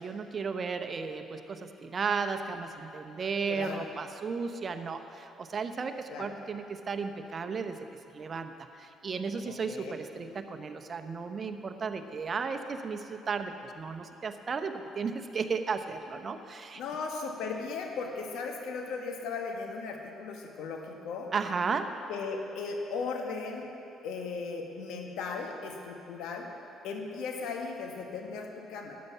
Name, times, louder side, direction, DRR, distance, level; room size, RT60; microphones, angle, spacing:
voice 1, 0.0-7.8 8.1-16.8 21.3-22.0, right 5 dB, 45° right, 8 dB, 0.9 m, -34 dB
voice 2, 3.5-3.9 6.1-6.3 9.5-9.9 16.8-21.3 22.1-23.7 24.0-26.5 26.8-28.9, left 4 dB, 70° left, 2 dB, 1.4 m, -37 dB
13.0 x 9.5 x 5.7 m, 2.8 s
hypercardioid pair, 55°, 0 cm